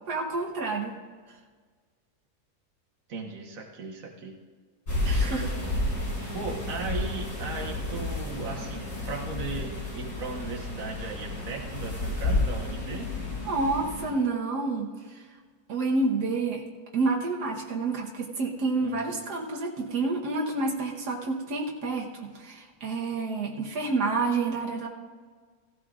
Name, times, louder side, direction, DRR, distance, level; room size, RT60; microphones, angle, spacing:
voice 1, 0.1-0.9 5.0-5.5 6.2-6.3 13.5-14.9 15.7-16.6 16.9-24.9, right 3 dB, 85° right, -1 dB, 1.7 m, -29 dB
voice 2, 3.1-4.4 6.3-13.1 18.8-19.2, right 3 dB, 60° right, 0 dB, 1.7 m, -37 dB
sound 1, 4.9-14.1, left 2 dB, 80° left, 5.2 m, -31 dB
16.5 x 16.0 x 2.5 m, 1.5 s
omnidirectional pair, 1.7 m